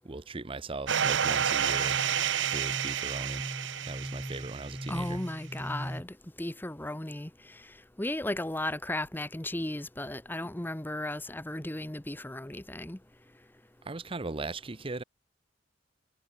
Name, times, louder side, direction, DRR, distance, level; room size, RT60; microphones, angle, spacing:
voice 1, 0.0-2.0 2.5-3.4 3.9-5.2 13.8-15.0, right 3 dB, 30° right, 0.9 m, -39 dB
sound 1, 0.9-6.0, equal, 10° right, 2.4 m, -40 dB
sound 2, 0.9-4.9, right 8 dB, 75° right, 0.8 m, -30 dB
voice 2, 4.9-7.3 8.0-13.0, left 1 dB, 10° left, 0.9 m, -35 dB
head